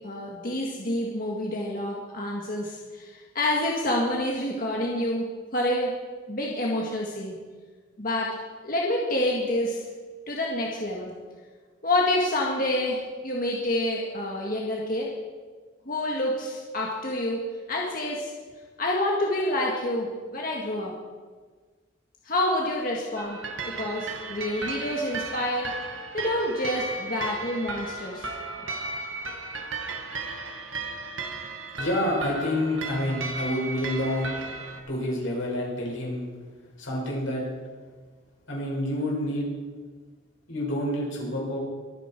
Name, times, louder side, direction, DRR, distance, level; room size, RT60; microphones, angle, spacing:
voice 1, 0.0-5.3 5.5-5.9 6.3-7.3 8.0-8.3 8.6-9.8 10.3-11.1 11.8-15.1 15.9-17.4 17.7-18.3 18.8-20.9 22.2-23.4 23.6-25.7 26.1-28.3, left 1 dB, 45° left, -2 dB, 1.8 m, -28 dB
sound 1, 23.2-34.8, right 3 dB, 85° right, 1.6 m, -35 dB
voice 2, 31.8-34.5 34.9-36.3 36.8-37.4 38.5-39.5 40.5-41.6, left 1 dB, 85° left, -3 dB, 5.7 m, -28 dB
23.5 x 9.3 x 4.5 m, 1.4 s
head